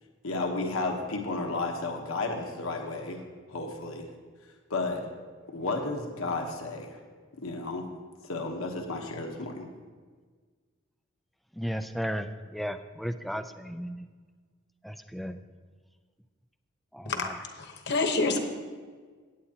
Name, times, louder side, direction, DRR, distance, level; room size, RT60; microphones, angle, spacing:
voice 1, 0.2-3.2 3.5-4.1 4.7-5.1 5.5-7.0 7.4-7.9 8.3-9.7, left 3 dB, 80° left, 3 dB, 1.2 m, -32 dB
voice 2, 11.6-12.3 12.5-14.1 14.8-15.4 16.9-17.1, equal, ahead, 9 dB, 0.4 m, -34 dB
voice 3, 17.0-18.4, left 3 dB, 55° left, 5 dB, 1.1 m, -28 dB
17.5 x 8.4 x 2.9 m, 1.5 s
head